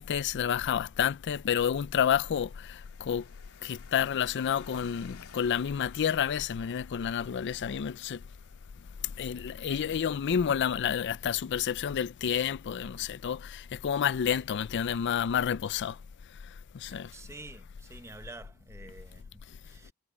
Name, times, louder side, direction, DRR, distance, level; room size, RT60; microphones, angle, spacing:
voice 1, 0.0-3.2 3.6-8.2 9.2-16.0 16.8-17.1, left 8 dB, 55° left, 0.4 m, -29 dB
sound 1, 1.6-14.7, left 7 dB, 80° left, 2.9 m, -58 dB
voice 2, 17.0-19.9, right 2 dB, 10° right, 0.8 m, -49 dB
head